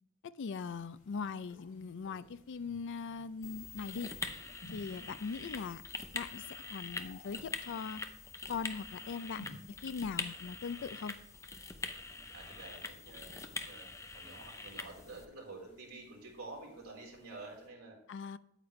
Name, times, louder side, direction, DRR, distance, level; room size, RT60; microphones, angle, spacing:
voice 1, 0.4-4.1 4.7-5.8 6.1-8.0 8.5-11.2 18.1-18.4, left 5 dB, 55° left, 15 dB, 0.4 m, -40 dB
sound 1, 0.6-17.7, left 1 dB, 85° left, 3.3 m, -60 dB
sound 2, 3.4-15.3, left 3 dB, 15° left, 0.6 m, -44 dB
voice 2, 12.3-18.0, right 2 dB, 80° right, -2 dB, 3.5 m, -50 dB
8.9 x 8.7 x 3.2 m, 0.82 s
head